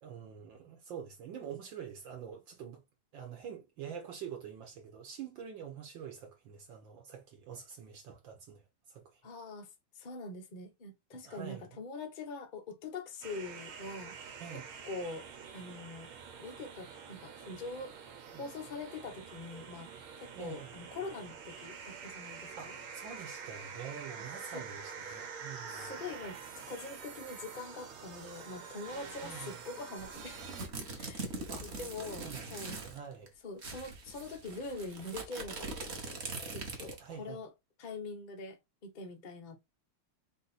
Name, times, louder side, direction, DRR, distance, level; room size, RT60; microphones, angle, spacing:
voice 1, 0.0-2.8 3.1-9.2 11.2-11.8 14.4-14.7 18.2-18.4 20.3-20.7 22.6-25.9 29.2-29.5 31.5-31.8 32.1-33.3 37.0-37.4, right 8 dB, 70° right, 1.5 m, -46 dB
voice 2, 9.2-9.7 9.9-15.3 15.5-16.1 16.4-17.9 18.3-19.9 20.2-22.7 24.5-24.6 25.0-26.4 26.7-30.4 30.9-31.3 31.6-32.8 33.4-37.5 37.8-39.6, left 3 dB, 85° left, 0.4 m, -44 dB
sound 1, 13.2-30.7, right 6 dB, 90° right, 1.8 m, -47 dB
sound 2, 30.0-33.0 33.3-33.4 33.6-37.1, right 3 dB, 45° right, 0.9 m, -42 dB
4.8 x 2.6 x 4.0 m
omnidirectional pair, 2.3 m